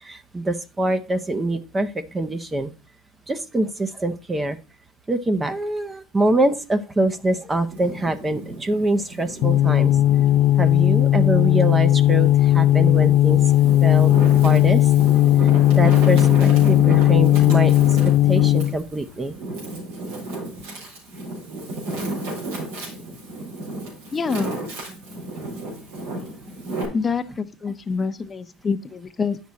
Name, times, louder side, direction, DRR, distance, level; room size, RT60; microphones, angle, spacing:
voice 1, 0.0-2.7 3.3-4.6 5.1-9.9 10.6-13.4 13.8-14.1 14.4-14.8 15.8-17.7 18.3-19.3, right 2 dB, 15° right, 10 dB, 0.7 m, -24 dB
Wind, 7.6-10.5 11.0-12.3 12.9-26.8, right 2 dB, 85° right, 4.4 m, -32 dB
sound 1, 9.4-18.8, left 13 dB, 55° left, 0.3 m, -16 dB
voice 2, 24.1-24.5 26.9-29.4, left 5 dB, 25° left, 9 dB, 0.8 m, -26 dB
9.4 x 6.2 x 4.1 m, 0.32 s
supercardioid pair, 110°, 0 cm